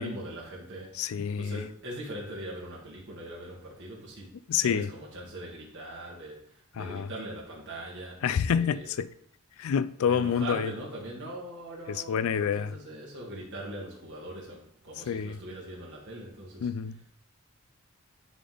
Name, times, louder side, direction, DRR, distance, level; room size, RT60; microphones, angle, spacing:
voice 1, 0.0-0.9 1.4-4.3 4.6-8.2 8.5-8.9 10.1-16.7, right 1 dB, 55° right, 1.7 m, -41 dB
voice 2, 1.0-1.6 4.5-4.9 6.8-7.1 8.2-9.1 9.6-10.7 11.9-12.7 15.1-15.4 16.6-17.0, left 7 dB, 65° left, 0.3 m, -28 dB
10.0 x 3.7 x 3.8 m
head